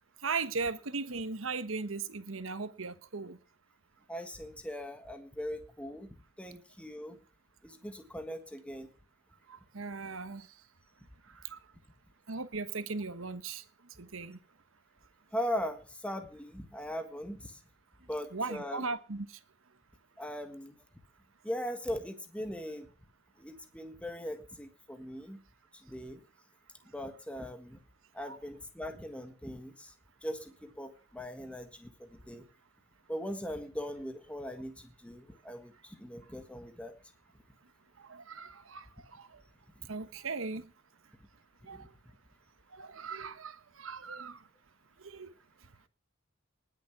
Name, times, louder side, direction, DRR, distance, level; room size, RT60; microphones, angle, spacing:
voice 1, 0.2-3.4 9.5-10.5 11.5-11.6 12.3-13.6 14.0-14.4 18.3-19.3 28.2-28.4 38.1-38.8 39.2-39.3 39.9-40.6 41.7-41.8 42.7-44.4 45.0-45.3, right 4 dB, 70° right, 1.2 m, -38 dB
voice 2, 4.1-6.1 6.4-7.2 7.6-8.9 15.3-17.6 18.1-18.8 20.2-20.7 21.4-22.9 23.4-25.4 25.8-26.2 26.9-27.8 28.1-29.9 30.2-32.4 33.1-36.9 41.7-41.9, equal, 5° left, 1.5 m, -40 dB
19.5 x 7.2 x 6.0 m
head